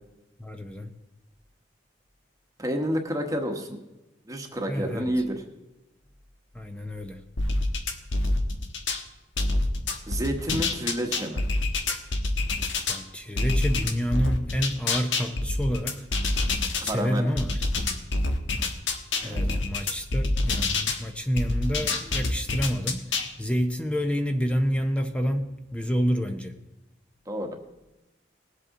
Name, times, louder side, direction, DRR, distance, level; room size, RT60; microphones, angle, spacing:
voice 1, 0.4-0.9 4.7-5.1 6.5-7.2 12.9-16.1 16.8-17.6 19.2-26.6, equal, 5° left, 6 dB, 0.6 m, -28 dB
voice 2, 2.6-3.8 4.3-5.4 10.1-11.4 16.8-17.3 19.2-19.6 27.3-27.5, equal, 20° right, 4 dB, 1.1 m, -29 dB
sound 1, 7.4-9.0 9.4-13.0 13.4-16.9 17.4-21.0 21.4-23.3, left 2 dB, 85° left, 1.3 m, -26 dB
19.5 x 8.2 x 3.7 m, 1.0 s
head